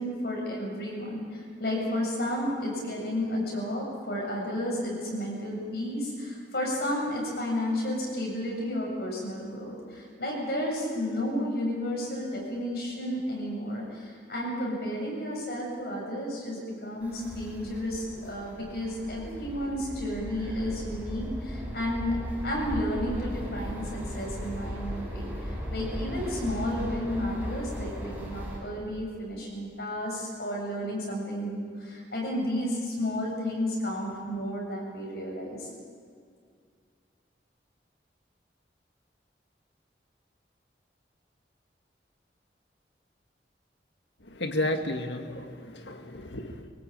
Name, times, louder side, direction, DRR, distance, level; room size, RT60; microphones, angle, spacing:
voice 1, 0.0-22.1 22.4-35.7, left 1 dB, 65° left, -2 dB, 7.8 m, -32 dB
sound 1, 17.0-28.6, equal, 10° right, 5.6 m, -37 dB
voice 2, 44.2-46.7, left 1 dB, 90° left, 6 dB, 1.8 m, -32 dB
23.5 x 18.5 x 8.8 m, 2.2 s
head